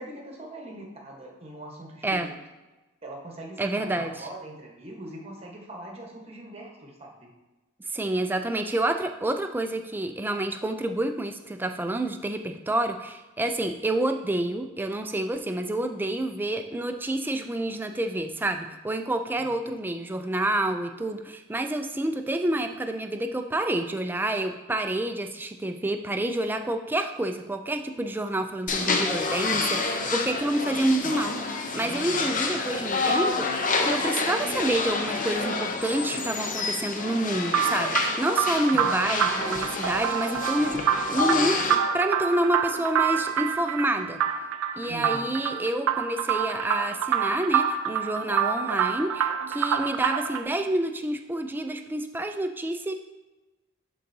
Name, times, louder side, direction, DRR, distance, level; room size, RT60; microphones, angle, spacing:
voice 1, 0.0-2.3 3.0-7.3 19.4-19.5 31.8-32.3 38.7-38.9 44.9-45.3, right 1 dB, 30° right, -1 dB, 1.1 m, -41 dB
voice 2, 3.6-4.1 7.9-31.4 31.7-40.8 41.1-44.2 44.8-52.9, right 1 dB, 10° right, 6 dB, 0.3 m, -28 dB
sound 1, 28.7-41.8, left 3 dB, 40° left, 0.6 m, -28 dB
sound 2, 37.5-50.5, right 8 dB, 75° right, 0.5 m, -27 dB
11.0 x 3.9 x 2.7 m, 1.1 s
head